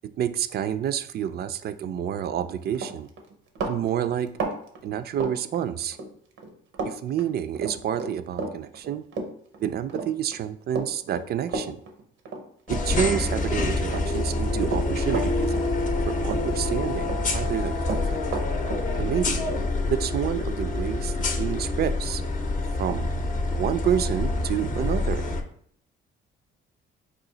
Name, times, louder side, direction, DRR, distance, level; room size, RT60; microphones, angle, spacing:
voice 1, 0.2-3.1 3.6-4.3 4.8-6.0 6.8-9.0 9.6-11.8 12.7-15.5 16.1-18.2 19.0-19.4 19.9-22.2 22.8-25.3, right 9 dB, 55° right, 11 dB, 0.4 m, -29 dB
Run, 2.3-2.5 2.7-6.1 6.4-6.9 7.2-13.5 13.9-16.0 16.3-17.2 17.4-20.8, right 3 dB, 90° right, 0.7 m, -33 dB
sound 1, 12.7-25.4, left 2 dB, 40° left, 0.6 m, -27 dB
4.9 x 2.4 x 3.9 m, 0.64 s
cardioid pair, 90°, 20 cm